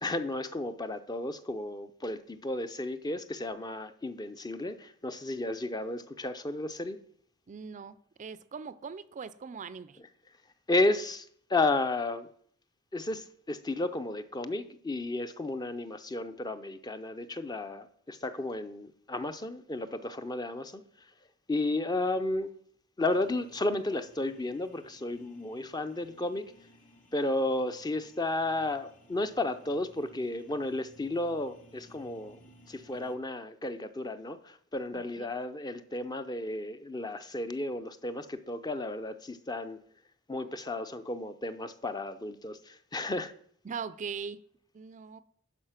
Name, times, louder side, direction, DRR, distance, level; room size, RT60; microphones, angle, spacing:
voice 1, 0.0-7.0 10.7-12.3 12.9-20.8 21.5-22.5 23.0-26.5 27.1-32.4 32.7-39.8 40.3-43.3, left 2 dB, 20° left, 0.5 m, -33 dB
voice 2, 7.5-10.0 34.9-35.3 43.6-44.4 44.7-45.2, right 6 dB, 35° right, 0.4 m, -41 dB
sound 1, 23.1-33.2, equal, 35° left, 1.3 m, -59 dB
11.5 x 4.9 x 5.8 m
head